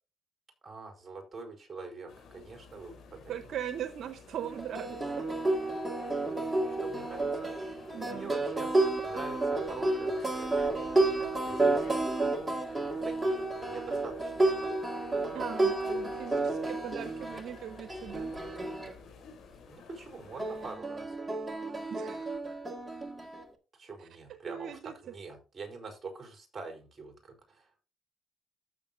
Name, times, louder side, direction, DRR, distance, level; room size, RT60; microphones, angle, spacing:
voice 1, 0.6-3.5 6.7-7.5 8.0-8.7 9.0-11.0 11.4-12.2 13.0-14.9 19.7-21.2 23.7-27.9, right 4 dB, 30° right, 3 dB, 4.4 m, -45 dB
sound 1, 2.1-20.8, left 5 dB, 75° left, 3.7 m, -52 dB
voice 2, 3.3-5.3 7.9-8.3 15.3-18.3 21.9-22.6 24.4-24.9, right 9 dB, 70° right, 10 dB, 0.9 m, -40 dB
sound 2, 4.4-18.9 20.4-23.5, right 2 dB, 15° right, 1.9 m, -31 dB
14.5 x 6.8 x 2.6 m, 0.32 s
cardioid pair, 90°, 0 cm